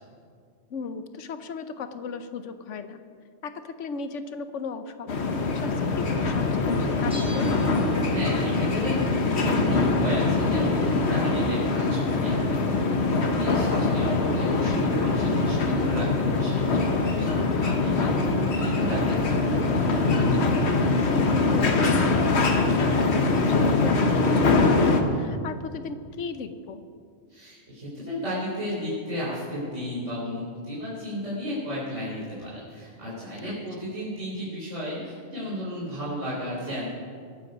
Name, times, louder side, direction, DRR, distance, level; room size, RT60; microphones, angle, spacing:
voice 1, 0.7-3.0 3.4-7.5 18.0-18.4 21.5-26.9 33.4-33.6, left 5 dB, 80° left, 10 dB, 1.2 m, -36 dB
sound 1, 5.1-25.0, left 3 dB, 65° left, 1.4 m, -23 dB
Bell, 7.1-8.5 8.8-8.9, equal, 5° right, 2.1 m, -44 dB
voice 2, 8.1-20.4 27.3-36.9, equal, 80° right, -9 dB, 4.3 m, -33 dB
21.5 x 8.7 x 5.4 m, 2.2 s
omnidirectional pair, 1.2 m